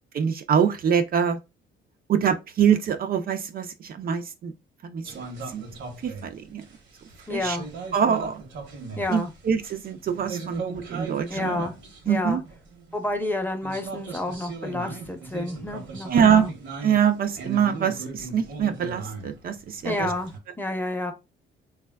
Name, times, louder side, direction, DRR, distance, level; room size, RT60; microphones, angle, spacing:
voice 1, 0.1-1.4 2.1-4.5 4.8-5.2 5.5-5.6 6.0-6.6 7.3-7.6 7.9-8.4 9.1-11.6 12.1-12.4 16.1-16.5 16.8-20.1, right 7 dB, 50° right, 0.4 m, -24 dB
sound 1, 5.0-13.1 13.6-20.4, right 4 dB, 70° right, 0.9 m, -38 dB
voice 2, 7.3-7.7 9.0-9.3 11.3-11.7 12.1-12.4 12.9-16.5 19.8-20.3 20.6-21.1, left 2 dB, 10° left, 0.6 m, -29 dB
3.2 x 2.2 x 2.2 m
cardioid pair, 90°, 20 cm